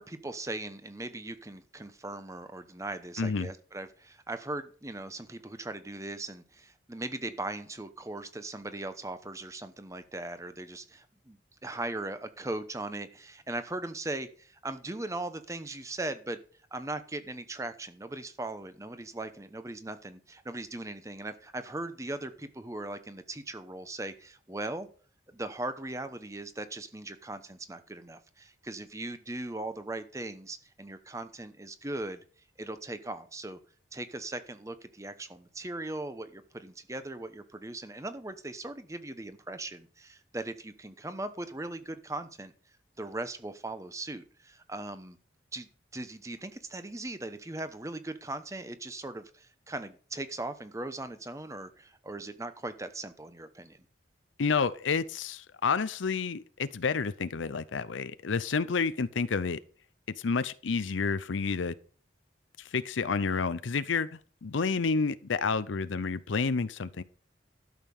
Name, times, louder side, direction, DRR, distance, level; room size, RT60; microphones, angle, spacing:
voice 1, 0.0-16.4 16.7-24.9 25.3-32.2 32.6-33.6 33.9-42.5 43.0-45.2 45.5-53.8, right 2 dB, 15° right, 0.9 m, -39 dB
voice 2, 3.2-3.5 54.4-59.6 60.2-61.7 62.6-67.0, left 5 dB, 90° left, 0.6 m, -30 dB
12.0 x 6.7 x 5.4 m
head